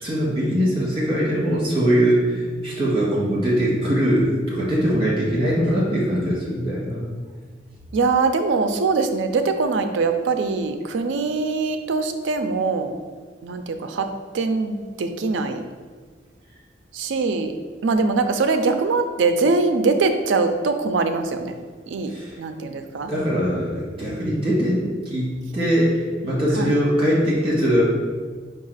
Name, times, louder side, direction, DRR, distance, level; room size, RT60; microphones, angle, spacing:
voice 1, 0.0-7.1 22.1-22.4 23.0-27.8, equal, 30° right, -6 dB, 1.4 m, -21 dB
voice 2, 2.3-2.8 7.9-13.0 13.4-14.1 14.3-15.6 16.9-17.5 17.8-21.5 21.9-22.1 22.4-23.1 26.6-26.7, right 4 dB, 85° right, 7 dB, 0.4 m, -22 dB
4.7 x 2.4 x 4.7 m, 1.5 s
head